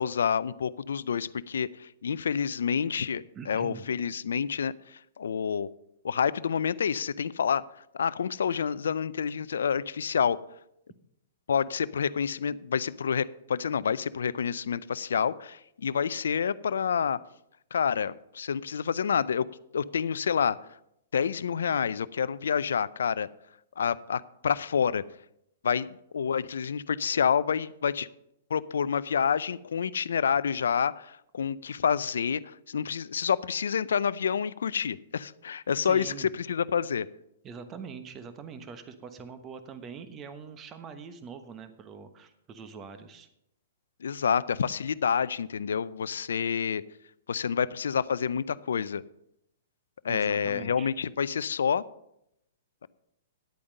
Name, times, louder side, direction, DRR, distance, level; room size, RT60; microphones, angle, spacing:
voice 1, 0.0-5.7 6.0-7.6 7.9-10.4 11.5-17.2 17.7-19.5 19.7-20.6 21.1-23.3 23.8-25.0 25.6-28.1 28.5-37.1 44.0-46.8 47.3-49.0 50.0-51.8, left 7 dB, 75° left, 17 dB, 0.4 m, -28 dB
voice 2, 3.3-3.8 35.8-36.3 37.4-43.3 50.1-50.9, right 6 dB, 25° right, 9 dB, 1.1 m, -43 dB
10.5 x 8.5 x 5.2 m, 0.78 s
hypercardioid pair, 120°, 0 cm